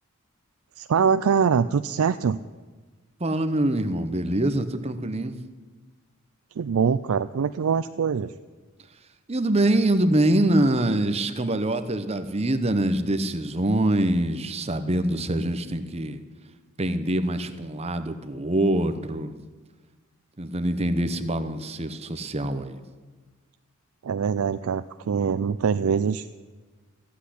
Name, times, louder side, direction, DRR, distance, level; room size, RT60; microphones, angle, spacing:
voice 1, 0.8-2.4 6.6-8.3 24.0-26.3, right 6 dB, 80° right, 11 dB, 0.4 m, -23 dB
voice 2, 3.2-5.4 9.3-16.2 16.8-19.4 20.4-22.8, right 1 dB, 30° right, 10 dB, 0.9 m, -24 dB
15.0 x 8.3 x 10.0 m, 1.3 s
head